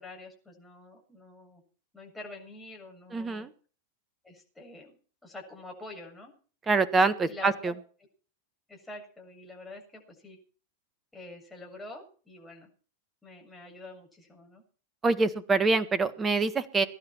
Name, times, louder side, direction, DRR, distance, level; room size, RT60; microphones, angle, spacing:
voice 1, 0.0-1.6 1.9-3.5 4.2-6.3 7.3-7.7 8.7-10.4 11.1-12.7 13.2-14.6, left 2 dB, 10° left, 0 dB, 7.2 m, -46 dB
voice 2, 3.1-3.5 6.7-7.7 15.0-16.9, right 3 dB, 20° right, 15 dB, 1.5 m, -25 dB
22.5 x 11.5 x 4.5 m, 0.40 s
figure-of-eight pair, 90°, 0 cm